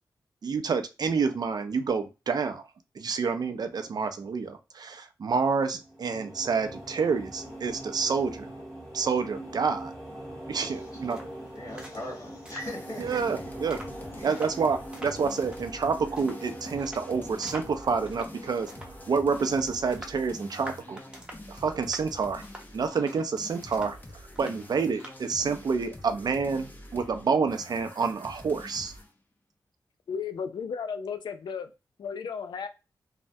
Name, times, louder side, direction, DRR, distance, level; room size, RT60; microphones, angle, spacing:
voice 1, 0.4-2.6 3.0-8.5 8.9-9.9 10.5-11.2 13.0-13.8 14.2-21.0 21.5-22.4 22.7-24.0 24.4-28.9, right 5 dB, 60° right, 0.4 m, -28 dB
sound 1, 5.7-21.0, right 1 dB, 5° left, 1.3 m, -43 dB
sound 2, 10.5-25.5, equal, 10° right, 0.9 m, -49 dB
voice 2, 10.6-11.0 11.3-13.5 14.0-14.5, left 1 dB, 45° left, 1.5 m, -41 dB
sound 3, 12.6-29.1, left 1 dB, 25° left, 0.6 m, -46 dB
voice 3, 30.1-31.7 32.0-32.7, left 6 dB, 75° left, 0.4 m, -34 dB
3.2 x 2.1 x 2.6 m
cardioid pair, 65°, 8 cm